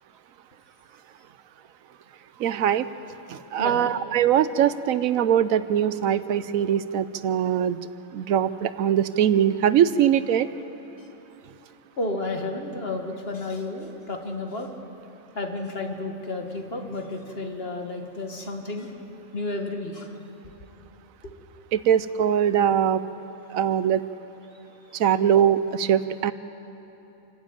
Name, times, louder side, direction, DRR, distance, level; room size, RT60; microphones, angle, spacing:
voice 1, 2.4-2.9 3.3-7.8 8.1-10.5 21.7-23.0 23.5-24.0 24.9-26.3, right 9 dB, 80° right, 14 dB, 1.1 m, -22 dB
voice 2, 3.6-3.9 12.0-14.7 15.4-18.9 19.3-20.1 21.2-21.3, left 2 dB, 45° left, 3 dB, 2.0 m, -32 dB
27.0 x 12.5 x 9.0 m, 2.9 s
omnidirectional pair, 1.4 m